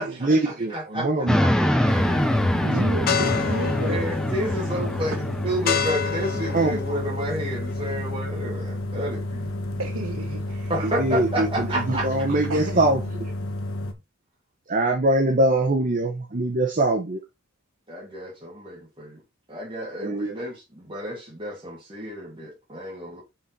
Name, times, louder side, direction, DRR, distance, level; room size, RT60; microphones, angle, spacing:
voice 1, 0.0-1.4 6.5-6.8 10.8-13.0 14.7-17.2 20.0-20.3, right 2 dB, 40° right, 1.0 m, -23 dB
voice 2, 0.7-1.1 1.4-1.5 2.1-2.2 3.8-9.5 10.7-12.3 17.9-19.2 19.5-23.2, right 1 dB, 25° right, 2.7 m, -31 dB
sound 1, 1.3-6.7, equal, 5° left, 0.7 m, -25 dB
voice 3, 1.7-2.4 2.6-4.1 4.5-5.2 9.8-10.7 12.5-12.9, right 3 dB, 80° right, 1.1 m, -34 dB
sound 2, 1.9-13.9, left 1 dB, 80° left, 1.2 m, -31 dB
sound 3, 3.1-8.1, left 7 dB, 50° left, 0.7 m, -30 dB
5.8 x 4.3 x 5.5 m
head